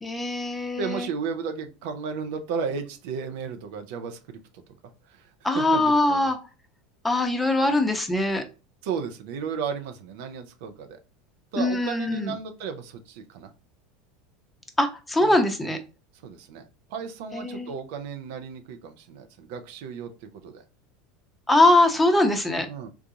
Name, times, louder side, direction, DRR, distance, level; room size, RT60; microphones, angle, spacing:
voice 1, 0.0-1.1 5.4-6.4 7.0-8.4 11.6-12.3 14.8-15.8 17.3-17.7 21.5-22.7, left 2 dB, 10° left, 6 dB, 0.7 m, -22 dB
voice 2, 0.8-4.6 5.1-5.3 5.5-6.3 7.6-7.8 8.8-11.0 11.5-13.5 15.2-15.4 16.2-20.6 22.7-22.9, right 6 dB, 65° right, 7 dB, 0.6 m, -34 dB
3.8 x 2.4 x 2.7 m, 0.33 s
hypercardioid pair, 80°, 0 cm